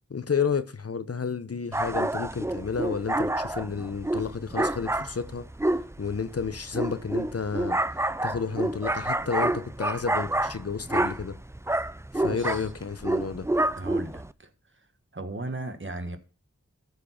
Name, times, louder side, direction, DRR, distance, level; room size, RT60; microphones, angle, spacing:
voice 1, 0.1-5.5 6.0-11.4 12.1-13.5, left 5 dB, 55° left, 0.7 m, -31 dB
sound 1, 1.7-14.3, right 1 dB, 10° right, 0.4 m, -28 dB
voice 2, 12.2-12.6 13.8-14.5 15.1-16.2, right 2 dB, 40° right, 1.4 m, -36 dB
13.5 x 4.7 x 5.7 m
wide cardioid pair, 50°, 29 cm